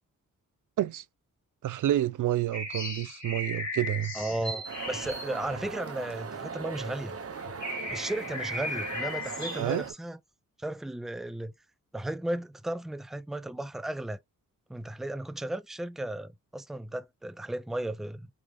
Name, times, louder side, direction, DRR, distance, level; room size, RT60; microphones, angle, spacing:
voice 1, 1.6-4.1 9.5-9.8, right 13 dB, 70° right, 0.5 m, -29 dB
sound 1, 2.5-6.4 7.0-7.1 7.4-9.9, left 1 dB, 55° left, 3.4 m, -37 dB
voice 2, 4.1-7.2 7.9-10.2 10.6-11.5 11.9-14.2 14.7-18.3, right 1 dB, ahead, 0.5 m, -35 dB
sound 2, 4.6-9.9, right 5 dB, 45° right, 1.1 m, -39 dB
4.7 x 3.8 x 2.5 m
cardioid pair, 70°, 32 cm